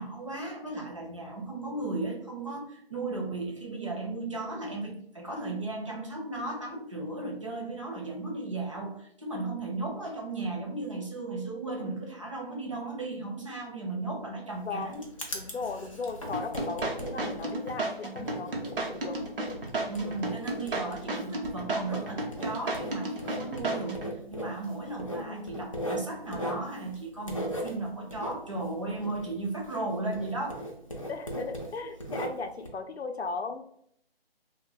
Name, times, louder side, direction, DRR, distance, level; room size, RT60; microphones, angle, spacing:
voice 1, 0.0-15.0 19.9-30.6 32.1-32.2, right 2 dB, 30° right, -1 dB, 0.5 m, -35 dB
Writing, 14.5-29.9 30.1-32.7, equal, 35° left, 0.4 m, -39 dB
voice 2, 14.6-15.0 15.3-19.2 25.1-25.7 31.1-33.6, left 4 dB, 90° left, 7 dB, 0.5 m, -37 dB
sound 1, 16.3-24.1, right 2 dB, 60° right, 0.7 m, -33 dB
2.2 x 2.1 x 3.5 m, 0.68 s
figure-of-eight pair, 160°, 31 cm